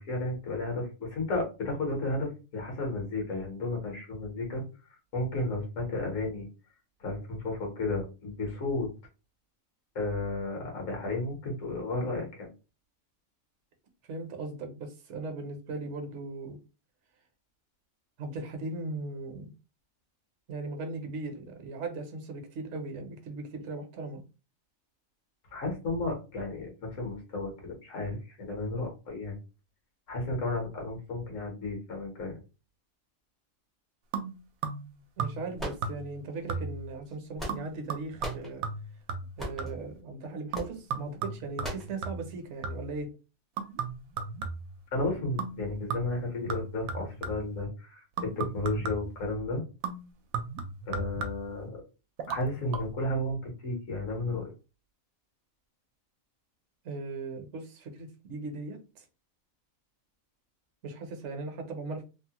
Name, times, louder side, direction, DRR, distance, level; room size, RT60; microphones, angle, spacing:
voice 1, 0.0-4.6 5.1-6.5 7.0-8.9 9.9-12.5 25.5-29.4 30.1-32.3 44.9-49.6 50.9-51.8 52.3-54.5, left 2 dB, 70° left, 1.5 m, -33 dB
voice 2, 14.0-16.6 18.2-19.5 20.5-24.2 35.2-38.6 39.4-43.1 56.8-59.0 60.8-62.0, right 3 dB, 65° right, 1.0 m, -38 dB
bottle-glugs, 34.1-34.9 35.2-35.6 35.8-36.2 36.5-36.9 37.5-39.9 40.5-43.0 43.6-44.8 45.4-45.6 45.9-47.6 48.2-49.2 49.8-51.6 52.2-52.4 52.7-52.8, right 5 dB, 85° right, 1.0 m, -36 dB
sound 1, 35.6-36.3 37.1-37.8 38.2-38.5 39.4-39.7 40.5-40.8 41.6-41.9, equal, ahead, 0.5 m, -38 dB
3.2 x 2.1 x 2.8 m
omnidirectional pair, 1.4 m